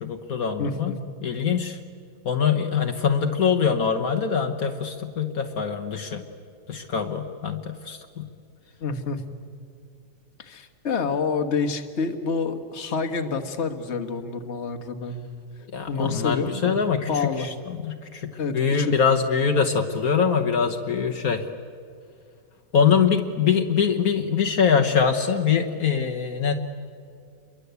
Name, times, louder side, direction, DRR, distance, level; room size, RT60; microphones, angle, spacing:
voice 1, 0.0-1.0 1.2-1.8 2.3-6.2 6.7-8.3 15.7-21.5 22.7-26.6, left 6 dB, 65° left, 4 dB, 1.6 m, -23 dB
voice 2, 0.6-1.0 8.8-9.2 10.4-15.3 15.9-16.8 17.1-17.5 18.4-18.9, left 5 dB, 45° left, 6 dB, 1.7 m, -28 dB
28.5 x 23.0 x 8.2 m, 2.3 s
omnidirectional pair, 1.7 m